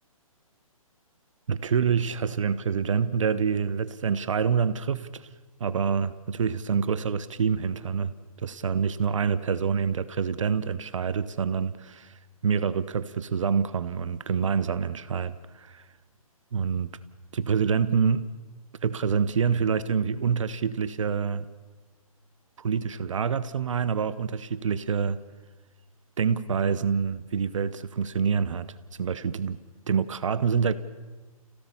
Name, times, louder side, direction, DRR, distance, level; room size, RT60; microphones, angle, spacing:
voice 1, 1.5-5.3 5.6-8.1 8.4-12.1 12.4-15.8 16.5-16.9 17.3-18.3 18.8-21.5 22.6-25.2 26.2-28.7 29.0-29.6 29.9-30.7, right 6 dB, 60° right, 14 dB, 1.0 m, -26 dB
27.0 x 17.0 x 7.0 m, 1.3 s
figure-of-eight pair, 135°, 19 cm